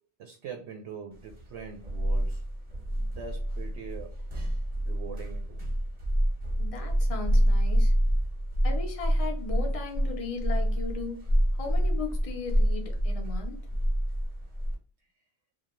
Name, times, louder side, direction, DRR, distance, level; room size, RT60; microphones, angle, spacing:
voice 1, 0.2-2.4 2.9-4.1 4.9-5.7, right 6 dB, 75° right, 0.8 m, -43 dB
sound 1, 1.3-14.7, equal, 35° right, 0.9 m, -27 dB
voice 2, 6.6-7.9 8.6-13.6, left 4 dB, 40° left, 0.5 m, -37 dB
2.5 x 2.2 x 2.9 m
omnidirectional pair, 1.2 m